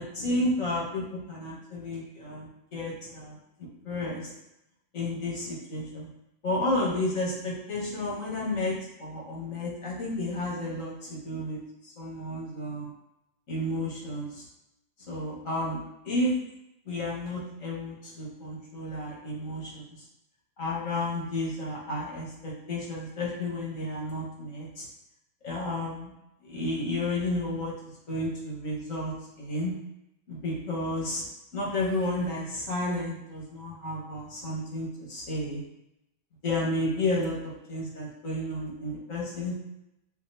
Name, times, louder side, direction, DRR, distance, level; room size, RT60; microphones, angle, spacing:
voice 1, 0.0-3.4 3.8-4.3 4.9-6.1 6.4-12.9 13.5-14.5 15.1-15.8 16.0-16.3 16.9-19.9 20.6-24.9 25.4-26.1 26.4-27.7 28.1-29.7 30.3-31.2 31.5-35.6 36.4-39.5, left 1 dB, 80° left, -5 dB, 1.7 m, -32 dB
7.2 x 2.6 x 2.7 m, 0.88 s
omnidirectional pair, 1.4 m